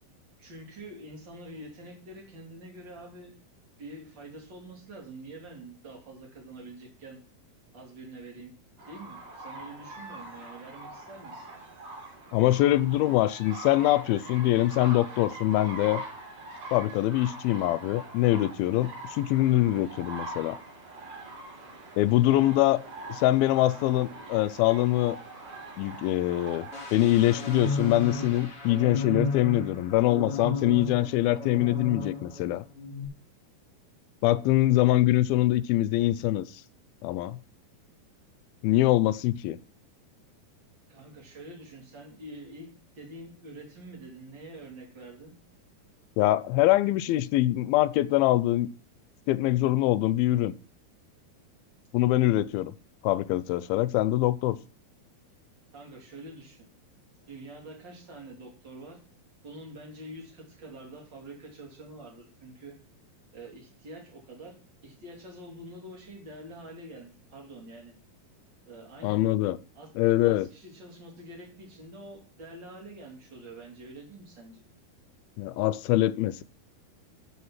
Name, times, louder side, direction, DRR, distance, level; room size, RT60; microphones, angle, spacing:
voice 1, 0.4-3.4 3.8-7.2 7.7-8.5 8.9-11.5 40.9-42.7 43.0-45.3 55.7-56.7 57.3-59.0 59.4-62.8 63.3-64.5 64.8-67.9 68.6-69.2 69.7-69.9 70.2-74.6, right 1 dB, 30° right, 3.1 m, -46 dB
sound 1, 8.8-28.5, right 2 dB, 55° right, 5.0 m, -43 dB
voice 2, 12.3-16.0 16.7-20.6 22.0-22.8 23.1-25.2 25.8-26.7 26.9-32.7 34.2-36.5 37.0-37.4 38.6-39.6 46.2-48.7 49.3-50.5 51.9-52.7 53.0-54.6 69.0-69.6 70.0-70.5 75.4-76.4, left 15 dB, 80° left, 2.3 m, -24 dB
sound 2, 26.7-32.4 32.7-33.0, left 2 dB, 40° left, 3.4 m, -34 dB
13.5 x 4.9 x 6.0 m
omnidirectional pair, 4.4 m